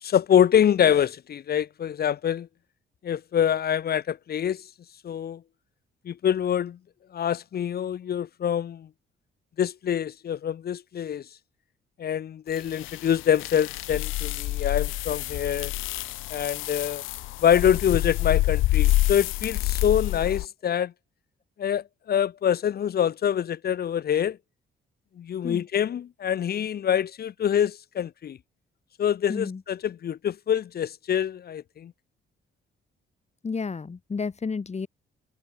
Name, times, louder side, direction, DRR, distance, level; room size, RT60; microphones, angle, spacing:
voice 1, 0.0-2.5 3.0-4.6 5.0-5.4 6.1-6.8 7.1-8.9 9.6-11.2 12.0-15.7 16.3-17.0 17.4-20.9 21.6-24.4 25.2-28.4 29.0-31.9, left 9 dB, 50° left, 0.9 m, -25 dB
sound 1, 12.6-20.5, left 17 dB, 85° left, 0.6 m, -27 dB
voice 2, 29.3-29.6 33.4-34.9, left 5 dB, 35° left, 7.4 m, -31 dB
cardioid pair, 90°, 20 cm